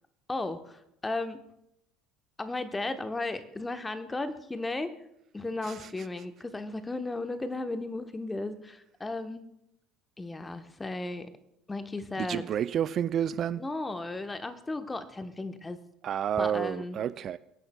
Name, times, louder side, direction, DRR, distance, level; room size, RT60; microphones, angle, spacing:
voice 1, 0.3-1.4 2.4-4.9 5.3-9.4 10.2-11.3 11.7-12.5 13.6-15.8 16.4-17.0, left 2 dB, 15° left, 1.1 m, -35 dB
voice 2, 12.2-13.6 16.0-17.4, right 9 dB, 45° right, 0.4 m, -30 dB
23.5 x 10.5 x 2.3 m
hypercardioid pair, 65°, 0 cm